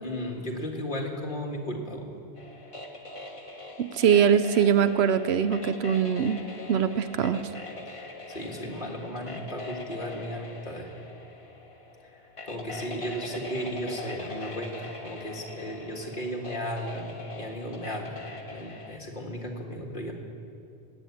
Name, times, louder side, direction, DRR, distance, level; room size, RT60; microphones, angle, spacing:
voice 1, 0.0-2.1 7.9-10.9 12.5-18.2 18.5-20.1, equal, 50° left, 0 dB, 2.0 m, -35 dB
sound 1, 2.3-19.0, left 2 dB, 30° left, 1.3 m, -42 dB
voice 2, 3.8-6.4 6.7-7.4, right 8 dB, 75° right, 12 dB, 0.9 m, -22 dB
18.0 x 8.1 x 8.6 m, 2.6 s
omnidirectional pair, 1.1 m